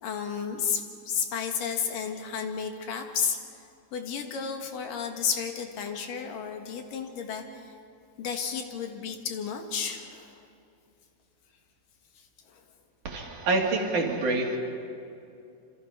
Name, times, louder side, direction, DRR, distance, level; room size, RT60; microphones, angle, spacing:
voice 1, 0.0-3.4 3.9-7.7 8.2-10.3 12.5-12.6, left 7 dB, 70° left, 4 dB, 3.2 m, -32 dB
voice 2, 13.1-14.6, right 2 dB, 60° right, 1 dB, 3.6 m, -26 dB
26.5 x 26.5 x 5.7 m, 2.6 s
omnidirectional pair, 4.0 m